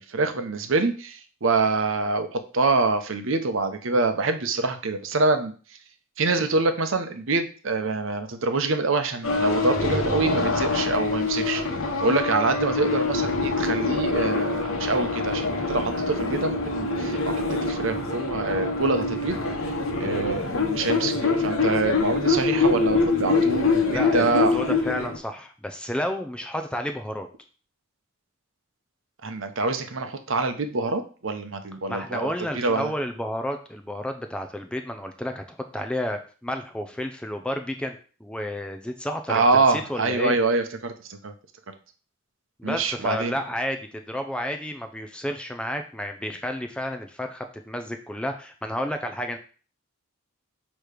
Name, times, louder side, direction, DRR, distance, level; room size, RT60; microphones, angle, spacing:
voice 1, 0.0-5.5 6.2-11.6 12.0-19.4 20.0-24.6 29.2-32.9 39.3-41.3 42.6-43.3, right 3 dB, 65° right, 8 dB, 0.8 m, -25 dB
sound 1, 9.2-25.2, left 3 dB, 70° left, 1.0 m, -25 dB
voice 2, 23.9-27.3 31.9-40.4 42.6-49.4, left 1 dB, 5° left, 5 dB, 0.4 m, -31 dB
6.5 x 3.1 x 5.0 m, 0.39 s
head